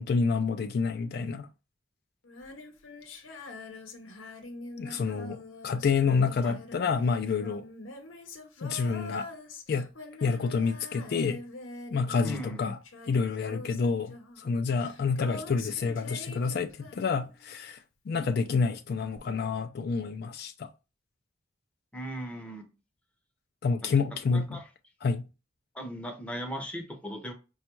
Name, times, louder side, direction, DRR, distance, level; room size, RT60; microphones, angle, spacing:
voice 1, 0.0-1.5 4.8-5.4 5.6-7.6 8.6-9.3 9.7-9.9 10.2-11.4 11.9-12.8 13.1-17.8 18.1-20.7 23.6-24.6 25.0-25.2, left 5 dB, 55° left, 0.3 m, -28 dB
Female singing, 2.2-17.6 19.2-19.3, left 2 dB, 85° left, 0.8 m, -45 dB
voice 2, 12.2-12.7 21.9-22.7 23.8-23.9 24.3-24.6 25.7-27.3, equal, 5° left, 0.6 m, -38 dB
5.1 x 2.3 x 3.0 m
head